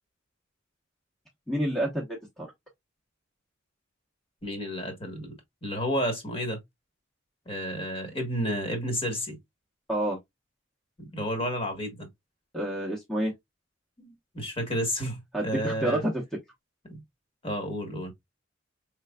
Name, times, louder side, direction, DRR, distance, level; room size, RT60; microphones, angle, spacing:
voice 1, 1.5-2.5 9.9-10.2 12.5-13.3 15.3-16.2, right 1 dB, 5° left, 0.9 m, -28 dB
voice 2, 4.4-5.3 5.6-6.6 7.4-9.4 11.0-12.1 14.0-16.0 16.9-17.0 17.4-18.1, equal, 30° left, 1.3 m, -31 dB
4.5 x 3.3 x 2.2 m
head